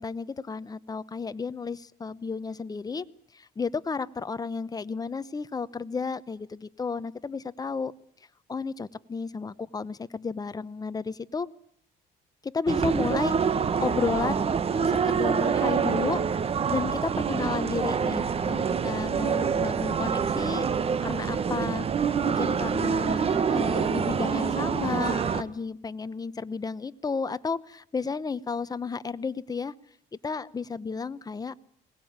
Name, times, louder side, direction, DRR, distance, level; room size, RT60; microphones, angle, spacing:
voice 1, 0.0-3.0 3.3-7.9 8.5-11.5 12.4-13.3 13.8-16.2 16.7-20.7 21.0-21.9 22.2-29.7 30.2-31.5, left 5 dB, 20° left, 15 dB, 0.9 m, -32 dB
sound 1, 12.7-25.4, right 6 dB, 35° right, 1.1 m, -26 dB
22.0 x 19.0 x 8.8 m, 0.65 s
cardioid pair, 110°, 17 cm